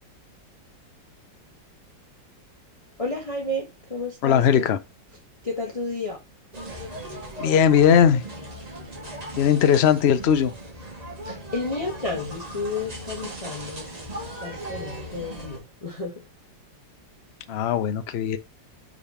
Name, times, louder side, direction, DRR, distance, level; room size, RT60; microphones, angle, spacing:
voice 1, 3.0-4.7 5.4-6.2 11.2-13.8 14.4-16.1, left 2 dB, 20° left, 1.1 m, -31 dB
voice 2, 4.2-4.8 7.4-8.2 9.4-10.5 17.5-18.4, left 8 dB, 80° left, 0.5 m, -19 dB
sound 1, 6.5-15.6, right 1 dB, 25° right, 1.4 m, -38 dB
5.1 x 3.9 x 5.5 m
omnidirectional pair, 2.0 m